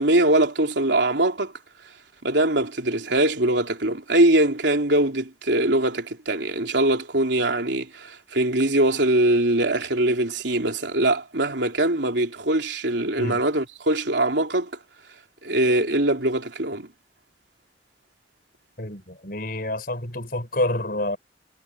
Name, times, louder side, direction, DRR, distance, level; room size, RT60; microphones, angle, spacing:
voice 1, 0.0-1.5 2.2-14.7 15.4-16.9, right 1 dB, 80° right, 3.3 m, -22 dB
voice 2, 18.8-21.2, left 1 dB, 55° left, 6.3 m, -28 dB
head